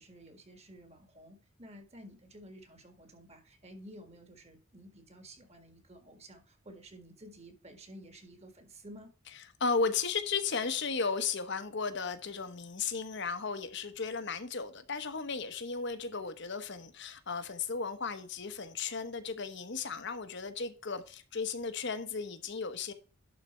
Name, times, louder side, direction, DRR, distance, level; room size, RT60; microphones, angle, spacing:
voice 1, 0.0-9.1, right 1 dB, 30° right, 1.9 m, -52 dB
voice 2, 9.6-22.9, left 5 dB, 55° left, 1.0 m, -35 dB
11.5 x 4.3 x 4.4 m
head